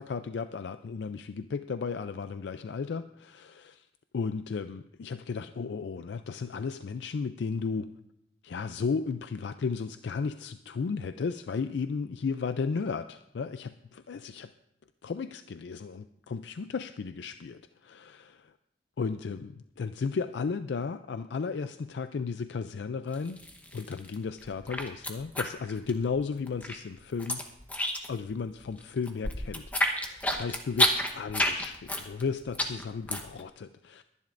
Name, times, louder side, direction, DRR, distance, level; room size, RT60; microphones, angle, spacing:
voice 1, 0.0-3.9 4.1-7.9 8.4-14.5 15.0-18.5 19.0-23.4 23.7-27.4 28.1-34.0, left 5 dB, 80° left, 10 dB, 0.4 m, -34 dB
sound 1, 23.1-24.1 24.4-26.2 26.5-28.3 28.6-33.4, left 1 dB, 10° left, 1.0 m, -29 dB
22.0 x 10.5 x 2.6 m, 0.78 s
head